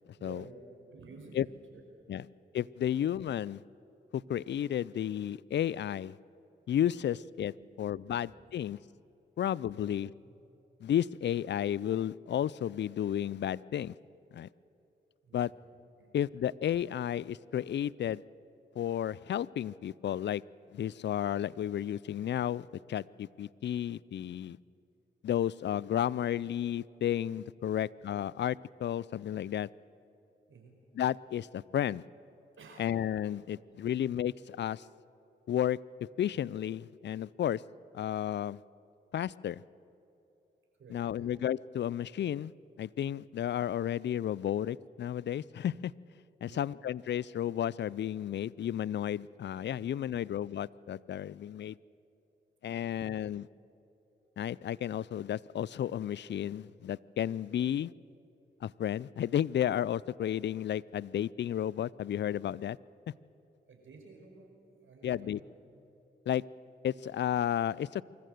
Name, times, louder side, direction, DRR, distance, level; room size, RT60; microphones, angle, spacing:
voice 1, 0.1-0.6 0.9-1.8 2.1-2.2 7.6-7.7 8.1-8.2 9.7-10.0 15.2-15.5 16.0-16.1 30.5-30.7 32.6-32.9 40.8-41.3 46.4-46.7 52.7-52.9 63.7-65.5, right 4 dB, 70° right, 2 dB, 4.8 m, -53 dB
voice 2, 2.5-3.6 4.1-6.2 6.7-8.8 9.4-10.1 10.8-13.9 14.3-14.5 15.3-15.5 16.1-18.2 18.8-20.4 20.7-24.6 25.2-29.7 30.9-32.0 32.8-34.9 35.5-35.8 36.2-37.6 37.9-38.6 39.1-39.6 40.9-42.5 42.8-45.9 46.4-51.8 52.6-53.5 54.4-57.9 58.6-62.8 65.0-65.4 66.3-66.4 66.8-68.0, left 10 dB, 60° left, 23 dB, 0.4 m, -32 dB
24.5 x 14.0 x 7.8 m, 2.8 s
supercardioid pair, 45°, 21 cm